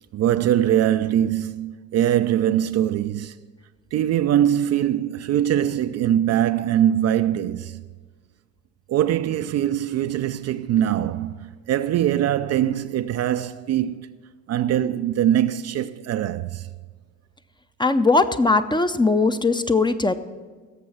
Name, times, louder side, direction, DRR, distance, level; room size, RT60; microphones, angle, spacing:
voice 1, 0.1-3.4 3.9-7.8 8.9-14.1 14.5-16.7, right 11 dB, 40° right, 0.4 m, -22 dB
voice 2, 17.8-20.1, left 3 dB, 10° left, 0.5 m, -19 dB
16.5 x 6.9 x 6.0 m
figure-of-eight pair, 50°, 41 cm